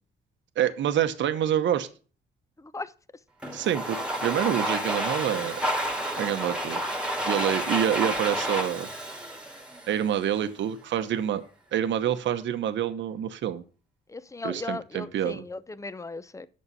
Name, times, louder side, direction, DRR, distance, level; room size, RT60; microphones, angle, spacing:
voice 1, 0.6-1.9 3.5-5.6 6.2-6.8 7.3-8.9 9.9-11.4 11.7-13.6 14.4-15.4, right 10 dB, 70° right, 1.0 m, -27 dB
voice 2, 2.6-2.9 14.1-16.5, left 3 dB, 15° left, 0.6 m, -37 dB
Domestic sounds home sounds, 3.4-10.3, right 1 dB, 5° right, 1.8 m, -30 dB
8.4 x 6.5 x 5.5 m
cardioid pair, 90°, 20 cm